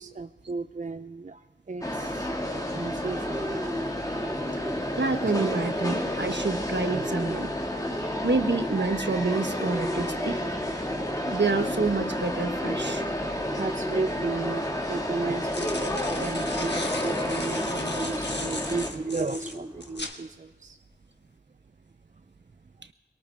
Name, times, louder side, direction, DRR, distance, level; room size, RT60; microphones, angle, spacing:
voice 1, 0.0-1.4 1.7-3.4 5.2-5.3 6.9-7.1 10.4-10.5 10.8-11.0 13.5-20.8, right 3 dB, 40° right, 10 dB, 0.4 m, -35 dB
sound 1, 1.8-18.9, left 1 dB, 20° left, 1.8 m, -31 dB
Bird, 3.0-20.0, equal, 15° right, 3.3 m, -40 dB
voice 2, 5.0-7.5 8.2-10.6 11.3-13.0, right 3 dB, 65° right, 7 dB, 1.1 m, -28 dB
sound 2, 15.2-20.2, left 2 dB, 60° left, 1.3 m, -37 dB
22.0 x 18.5 x 3.4 m, 1.3 s
wide cardioid pair, 40°, 20 cm